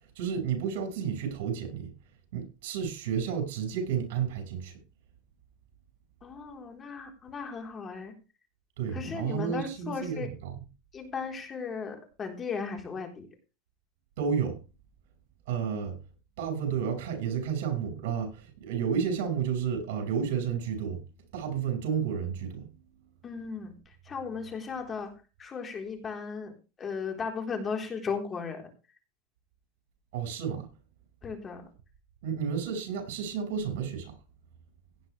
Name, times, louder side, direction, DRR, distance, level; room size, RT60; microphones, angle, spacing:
voice 1, 0.2-1.9 2.3-4.8 8.8-10.6 14.2-14.6 15.5-16.0 16.4-21.0 21.3-22.7 30.1-30.7 32.2-34.1, right 7 dB, 80° right, 5.4 m, -31 dB
voice 2, 6.2-8.2 8.9-10.3 10.9-13.3 15.6-15.8 23.2-25.1 25.4-28.7 31.2-31.6, left 5 dB, 25° left, 3.9 m, -36 dB
17.0 x 10.0 x 3.4 m
supercardioid pair, 135°, 0 cm